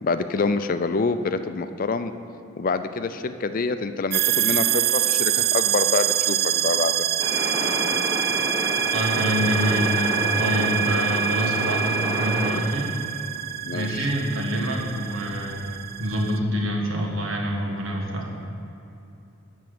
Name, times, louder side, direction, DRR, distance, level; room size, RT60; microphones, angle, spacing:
voice 1, 0.0-2.1 2.6-7.1 13.6-14.1, left 4 dB, 45° left, 10 dB, 0.4 m, -26 dB
sound 1, 4.1-16.4, right 12 dB, 50° right, 0.4 m, -26 dB
sound 2, 7.2-12.5, right 2 dB, 20° right, 1.4 m, -27 dB
voice 2, 8.8-12.9 13.7-15.5 16.0-18.3, equal, 85° right, 0 dB, 1.5 m, -26 dB
11.0 x 4.6 x 7.7 m, 2.8 s
head